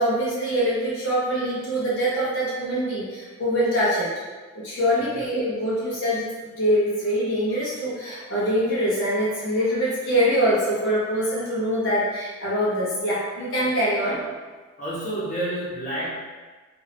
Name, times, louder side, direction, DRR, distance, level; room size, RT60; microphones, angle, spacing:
voice 1, 0.0-4.1 4.5-6.3 6.6-14.2, equal, 65° left, -8 dB, 0.9 m, -24 dB
voice 2, 14.8-16.2, right 1 dB, 40° left, -8 dB, 1.1 m, -30 dB
3.4 x 2.7 x 3.8 m, 1.4 s
head